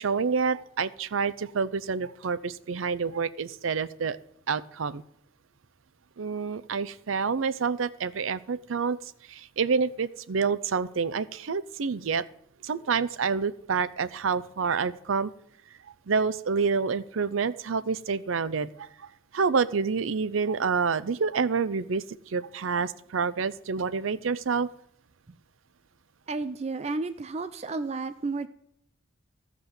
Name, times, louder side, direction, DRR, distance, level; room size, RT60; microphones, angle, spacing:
voice 1, 0.0-4.2 4.5-5.0 6.2-9.0 9.3-12.2 12.6-15.3 16.1-19.1 19.3-24.7, right 5 dB, 90° right, 16 dB, 0.6 m, -28 dB
voice 2, 26.3-28.5, right 3 dB, 35° right, 12 dB, 0.4 m, -32 dB
14.0 x 6.0 x 6.9 m, 0.73 s
head